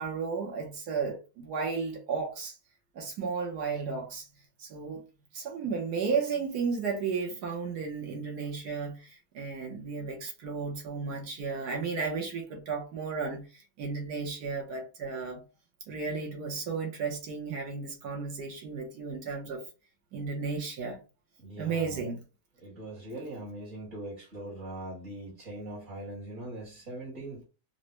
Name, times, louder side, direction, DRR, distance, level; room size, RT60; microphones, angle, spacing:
voice 1, 0.0-2.6 2.9-4.3 4.6-5.0 5.3-15.4 15.9-19.6 20.1-21.0 21.6-22.2, right 5 dB, 75° right, 1.4 m, -34 dB
voice 2, 21.4-22.0 22.6-27.4, right 1 dB, 45° right, 1.8 m, -41 dB
3.9 x 2.1 x 3.0 m
omnidirectional pair, 1.8 m